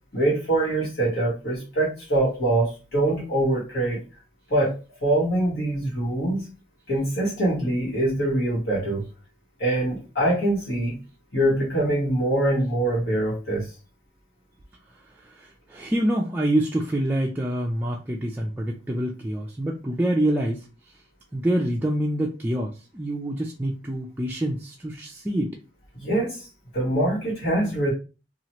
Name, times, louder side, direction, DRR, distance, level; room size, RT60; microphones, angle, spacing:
voice 1, 0.1-4.0 4.5-4.7 5.0-6.5 6.9-9.0 9.6-11.0 11.3-13.7 26.0-26.5 26.7-27.9, right 1 dB, 65° left, -6 dB, 1.3 m, -24 dB
voice 2, 15.3-20.6 21.3-25.6, right 1 dB, 10° right, -2 dB, 0.3 m, -26 dB
2.9 x 2.4 x 2.9 m, 0.31 s
head